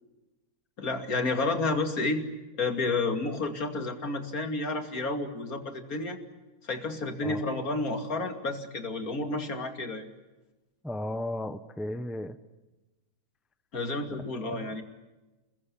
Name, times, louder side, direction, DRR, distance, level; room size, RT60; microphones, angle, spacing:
voice 1, 0.8-2.2 2.6-6.2 6.6-10.0 13.7-14.8, left 3 dB, 65° left, 6 dB, 3.1 m, -30 dB
voice 2, 10.8-12.4 14.3-14.8, left 1 dB, ahead, 12 dB, 0.8 m, -35 dB
29.0 x 21.5 x 8.6 m, 1.1 s
omnidirectional pair, 1.6 m